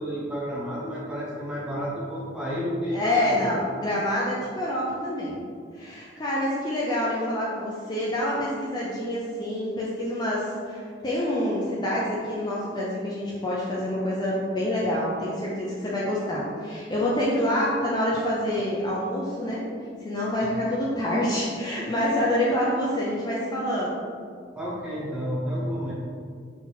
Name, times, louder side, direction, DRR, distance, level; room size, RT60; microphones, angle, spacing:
voice 1, 0.0-3.4 20.4-20.5 24.5-25.9, equal, 5° right, -7 dB, 1.1 m, -31 dB
voice 2, 2.9-5.4 5.7-19.7 20.0-24.0, left 1 dB, 25° left, -6 dB, 0.5 m, -27 dB
4.1 x 2.9 x 4.0 m, 2.1 s
head